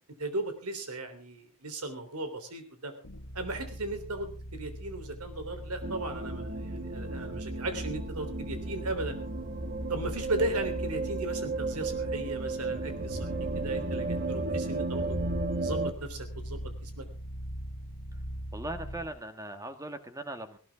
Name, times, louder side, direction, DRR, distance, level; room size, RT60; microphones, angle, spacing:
voice 1, 0.2-2.9 3.3-9.2 9.9-13.3 13.5-15.2 15.6-17.0, right 2 dB, 85° right, 8 dB, 3.5 m, -36 dB
sound 1, 3.0-19.2, equal, 80° left, 1.7 m, -41 dB
sound 2, 5.8-15.9, right 3 dB, 40° right, 1.5 m, -34 dB
voice 2, 18.5-20.6, right 1 dB, 15° right, 8 dB, 1.6 m, -39 dB
19.0 x 17.0 x 3.6 m, 0.36 s
head